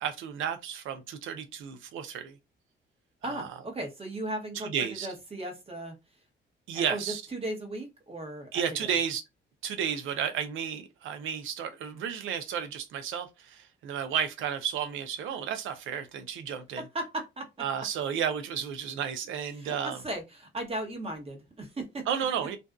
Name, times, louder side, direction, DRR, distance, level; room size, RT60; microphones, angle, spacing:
voice 1, 0.0-2.4 3.2-3.5 4.5-5.1 6.7-7.2 8.5-9.2 9.6-16.9 17.6-20.0 22.1-22.6, right 8 dB, 80° right, 0.6 m, -32 dB
voice 2, 3.2-6.0 6.7-8.9 16.8-17.5 19.5-22.1 22.4-22.6, right 1 dB, 30° right, 1.0 m, -37 dB
2.5 x 2.3 x 2.3 m
cardioid pair, 90°, 20 cm